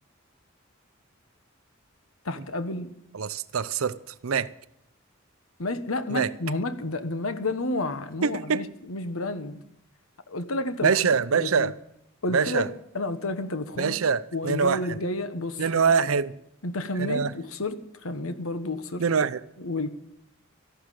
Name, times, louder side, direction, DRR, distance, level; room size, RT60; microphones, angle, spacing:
voice 1, 2.2-2.9 5.6-9.6 10.3-10.9 11.3-11.7 12.2-12.6 12.9-14.0 14.3-16.0 16.6-19.0 19.6-19.9, left 2 dB, 80° left, 1.3 m, -31 dB
voice 2, 3.1-4.5 6.1-6.3 8.2-8.6 10.8-11.7 12.3-12.7 13.8-15.0 15.6-16.3 17.0-17.3 19.0-19.4, right 6 dB, 75° right, 0.6 m, -24 dB
14.0 x 11.5 x 7.6 m
head